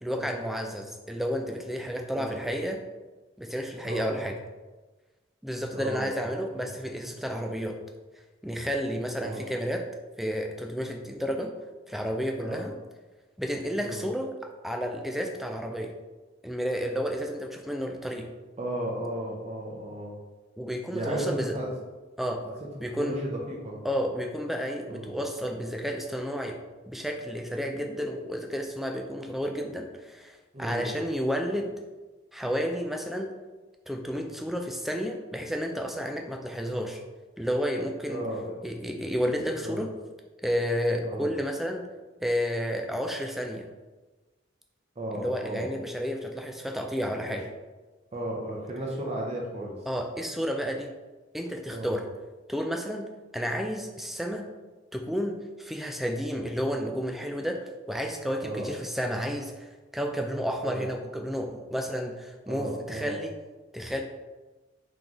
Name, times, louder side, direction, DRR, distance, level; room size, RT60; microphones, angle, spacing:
voice 1, 0.0-2.8 3.4-4.4 5.4-7.8 8.4-9.8 10.2-11.5 11.9-12.7 13.4-14.3 14.6-15.9 16.4-18.3 20.6-21.5 22.2-22.4 22.8-23.2 23.8-26.6 26.9-31.7 32.3-33.3 33.9-37.0 37.4-38.2 38.6-39.9 40.4-41.9 42.2-43.6 45.1-47.4 49.9-50.9 51.3-52.0 52.5-53.1 53.3-54.5 54.9-57.6 57.9-63.3 63.7-64.0, equal, ahead, 3 dB, 0.3 m, -31 dB
voice 2, 5.7-6.2 6.5-6.7 9.2-9.4 12.5-12.7 13.8-14.1 18.6-20.1 20.9-21.7 22.4-22.5 22.9-23.8 24.9-25.1 30.5-30.9 34.2-34.3 38.1-38.6 39.6-39.8 41.0-41.3 45.0-45.7 47.3-47.4 48.1-49.8 51.7-52.0 58.4-58.7 60.6-60.9 62.5-63.2, right 1 dB, 35° right, -2 dB, 0.6 m, -34 dB
3.8 x 3.7 x 3.0 m, 1.2 s
head